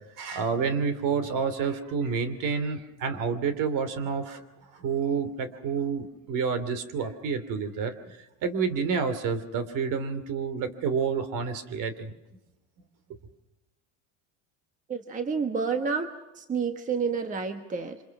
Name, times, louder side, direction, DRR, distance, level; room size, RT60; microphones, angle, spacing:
voice 1, 0.2-4.4 4.7-8.2 8.4-12.1, right 5 dB, 50° right, 12 dB, 2.9 m, -29 dB
voice 2, 14.9-18.0, right 5 dB, 20° right, 7 dB, 1.3 m, -30 dB
27.5 x 26.0 x 6.0 m, 0.94 s
cardioid pair, 150°, 41 cm